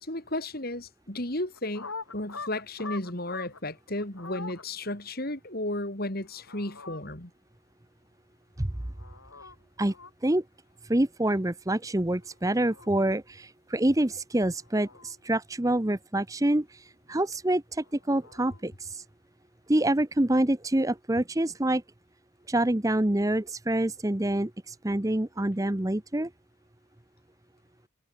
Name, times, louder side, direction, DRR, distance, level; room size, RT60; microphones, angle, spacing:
voice 1, 0.0-7.3, left 1 dB, 45° left, 3.4 m, -34 dB
sound 1, 1.5-3.6 4.0-4.6 6.2-7.0 8.7-9.6 9.8-10.1 12.2-12.9 14.4-15.4 17.8-18.6, left 4 dB, 80° left, 7.4 m, -44 dB
voice 2, 10.9-19.0 19.7-21.8 22.5-26.3, right 1 dB, 15° right, 0.7 m, -26 dB
head